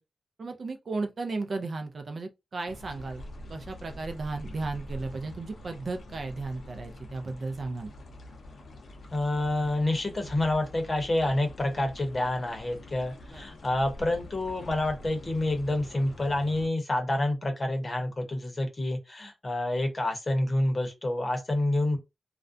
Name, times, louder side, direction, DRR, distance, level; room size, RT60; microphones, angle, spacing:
voice 1, 0.4-3.2 3.5-7.9 13.3-13.4, right 3 dB, 55° right, 0.4 m, -35 dB
sound 1, 2.7-16.7, left 1 dB, 70° left, 0.5 m, -45 dB
voice 2, 9.1-22.0, left 1 dB, 35° left, 0.7 m, -28 dB
2.4 x 2.1 x 2.5 m
wide cardioid pair, 100°, 0 cm